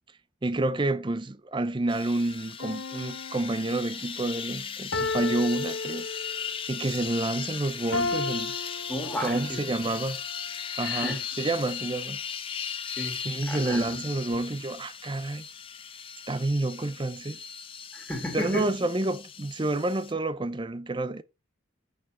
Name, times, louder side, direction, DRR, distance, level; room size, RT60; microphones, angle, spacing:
voice 1, 0.4-6.1 6.7-8.5 9.2-10.2 10.8-12.2 13.2-15.4 16.3-17.4 18.3-21.2, right 2 dB, 25° right, 0.5 m, -29 dB
sound 1, 1.9-20.1, left 7 dB, 25° left, 0.6 m, -37 dB
sound 2, 2.6-3.9 4.9-6.6 7.9-9.6 10.3-10.4, left 3 dB, 70° left, 1.1 m, -33 dB
voice 2, 8.9-9.6 10.8-11.2 12.8-13.2 13.5-14.0 14.3-14.4 17.9-18.7, equal, 5° left, 2.6 m, -33 dB
8.6 x 4.7 x 6.1 m
head